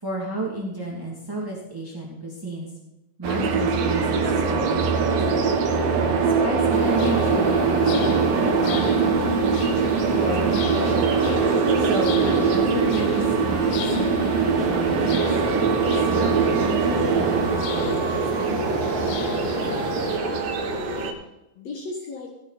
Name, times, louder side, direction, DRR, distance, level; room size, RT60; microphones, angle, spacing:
voice 1, 0.0-2.7 3.2-5.5 6.2-9.2 10.1-11.1 11.7-15.3 16.0-18.6, right 1 dB, 10° right, -4 dB, 1.2 m, -32 dB
sound 1, 3.2-21.1, right 4 dB, 60° right, 2.9 m, -22 dB
sound 2, 6.2-18.8, right 10 dB, 75° right, 3.7 m, -30 dB
sound 3, 6.7-20.2, left 11 dB, 80° left, 2.4 m, -36 dB
voice 2, 19.8-21.1 21.5-22.3, left 4 dB, 60° left, 0 dB, 1.8 m, -36 dB
17.0 x 10.5 x 4.2 m, 0.95 s
omnidirectional pair, 5.2 m